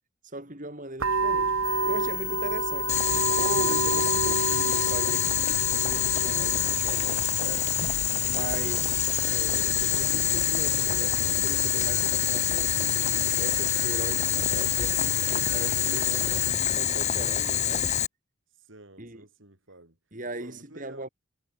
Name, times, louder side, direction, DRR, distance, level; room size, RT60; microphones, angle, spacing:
voice 1, 0.3-1.5 1.9-3.0 3.3-7.7 8.3-13.0 13.4-17.9 19.0-19.2 20.1-21.1, right 1 dB, 40° right, 4.5 m, -39 dB
sound 1, 1.0-11.6, right 4 dB, 85° right, 1.7 m, -31 dB
sound 2, 1.6-16.5, left 5 dB, 10° left, 2.0 m, -33 dB
Boiling, 2.9-18.1, left 10 dB, 35° left, 0.9 m, -26 dB
voice 2, 8.5-9.0 18.5-20.0 20.3-21.1, right 2 dB, 65° right, 3.2 m, -51 dB
head